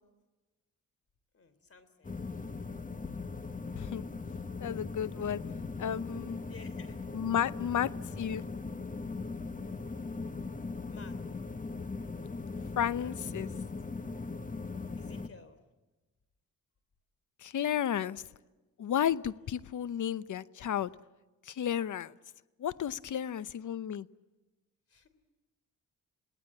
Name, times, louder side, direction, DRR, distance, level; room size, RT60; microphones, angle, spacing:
voice 1, 1.3-2.3 6.5-7.1 9.8-10.3 10.9-11.2 14.8-15.7 23.2-23.5 24.9-25.1, left 4 dB, 40° left, 12 dB, 3.4 m, -55 dB
sound 1, 2.0-15.3, left 4 dB, 25° left, 1.3 m, -39 dB
voice 2, 3.8-4.1 4.6-5.4 5.8-6.4 7.1-8.4 12.8-13.5 17.4-18.2 18.8-20.9 21.5-22.1 22.6-24.1, left 9 dB, 60° left, 17 dB, 0.8 m, -32 dB
29.0 x 19.0 x 8.6 m, 1.2 s
cardioid pair, 80°, 34 cm